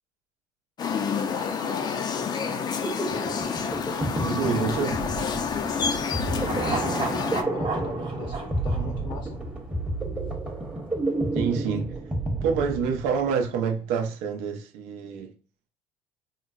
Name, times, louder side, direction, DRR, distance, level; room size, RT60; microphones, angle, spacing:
sound 1, 0.8-7.4, left 6 dB, 35° left, 0.4 m, -29 dB
voice 1, 0.9-2.8 6.1-6.9 7.3-9.4, left 3 dB, 65° left, 0.7 m, -38 dB
sound 2, 2.5-13.3, right 2 dB, 10° right, 0.8 m, -31 dB
voice 2, 4.2-5.1 11.3-11.9 12.4-15.3, right 6 dB, 75° right, 0.6 m, -27 dB
sound 3, 6.4-9.8 10.1-10.2, right 4 dB, 45° right, 0.8 m, -33 dB
3.7 x 2.0 x 2.3 m
supercardioid pair, 85°, 12 cm